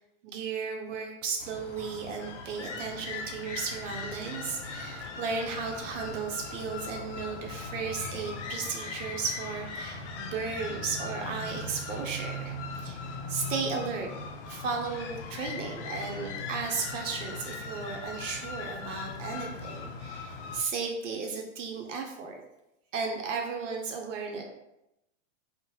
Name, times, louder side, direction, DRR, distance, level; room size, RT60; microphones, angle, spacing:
voice 1, 0.2-13.0 13.3-14.1 14.5-22.4 22.9-24.4, right 5 dB, 80° right, 2 dB, 0.6 m, -35 dB
sound 1, 1.4-20.6, left 3 dB, 65° left, 0.5 m, -39 dB
2.8 x 2.0 x 3.0 m, 0.89 s
supercardioid pair, 150°, 37 cm